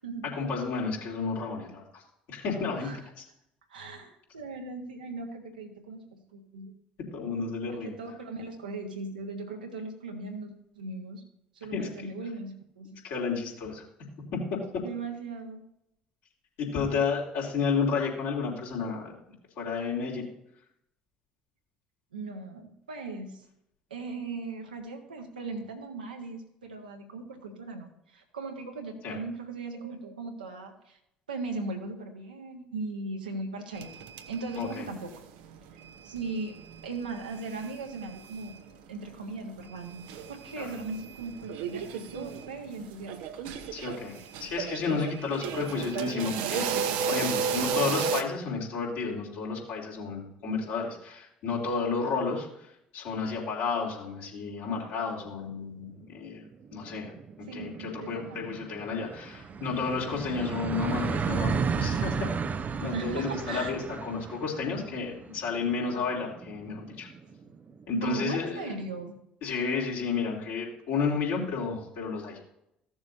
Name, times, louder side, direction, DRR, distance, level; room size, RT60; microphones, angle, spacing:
voice 1, 0.3-2.0 2.3-2.9 7.1-7.9 11.7-11.9 13.0-13.8 14.3-14.8 16.6-19.1 19.6-20.2 29.0-29.2 34.6-34.9 40.6-40.7 43.7-52.5 52.9-56.4 56.7-57.1 57.4-62.3 62.8-67.1 67.9-68.7 69.4-72.4, left 5 dB, 60° left, -4 dB, 3.4 m, -31 dB
voice 2, 3.7-6.7 7.7-11.2 11.5-13.0 14.8-15.6 22.1-23.4 23.9-31.0 31.3-33.9 34.3-35.2 35.7-36.6 36.8-38.6 38.9-43.2 44.9-45.1 57.4-58.5 62.9-63.7 67.9-69.2, right 3 dB, 80° right, 2 dB, 1.4 m, -38 dB
sound 1, 33.7-35.2 35.4-38.7 39.0-39.1 39.6-48.2, right 7 dB, 65° right, 0.8 m, -34 dB
sound 2, 55.7-55.8 56.1-56.2 56.5-67.9, right 6 dB, 35° right, 0.6 m, -34 dB
15.5 x 7.1 x 2.7 m, 0.77 s
figure-of-eight pair, 55°, 4 cm